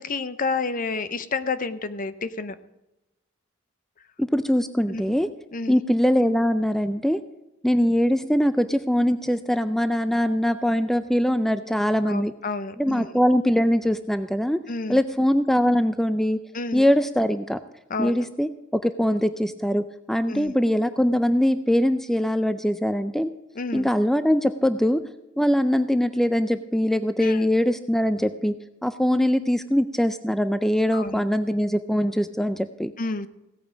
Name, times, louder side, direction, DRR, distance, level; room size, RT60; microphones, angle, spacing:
voice 1, 0.0-2.6 4.9-5.2 5.5-5.7 12.1-13.1 14.7-15.0 16.5-16.9 17.9-18.3 20.3-20.5 23.6-23.9 27.2-27.4 30.9-31.3 33.0-33.3, left 4 dB, 45° left, 13 dB, 0.7 m, -30 dB
voice 2, 4.2-5.3 5.7-7.2 7.6-12.3 12.8-14.6 14.9-16.4 16.7-17.6 18.0-18.5 18.8-23.3 23.7-25.0 25.4-28.5 28.8-32.9, equal, ahead, 11 dB, 0.4 m, -22 dB
16.5 x 8.5 x 5.0 m, 0.95 s
head